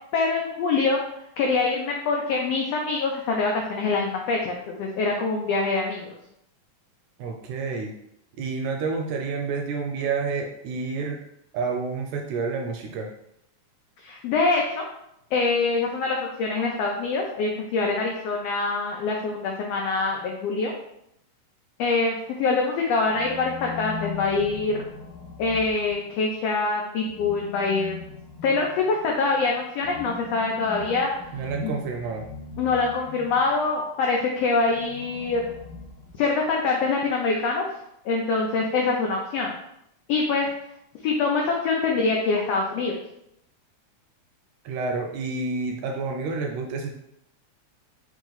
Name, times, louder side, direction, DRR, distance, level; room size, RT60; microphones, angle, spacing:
voice 1, 0.1-1.0 1.4-6.2 14.0-14.8 15.3-20.7 21.8-24.8 25.4-28.0 28.4-31.1 31.6-31.7 32.6-35.4 36.2-37.7 38.0-39.5 40.1-40.5 41.0-42.9, left 3 dB, 90° left, 0 dB, 1.4 m, -24 dB
voice 2, 7.2-7.9 8.4-11.2 11.5-13.1 31.3-32.3 44.7-46.9, right 4 dB, 80° right, 2 dB, 1.8 m, -29 dB
sound 1, 23.0-26.3 27.0-33.6 34.6-36.5, left 5 dB, 65° left, 1.7 m, -41 dB
4.4 x 3.1 x 3.8 m, 0.78 s
omnidirectional pair, 3.5 m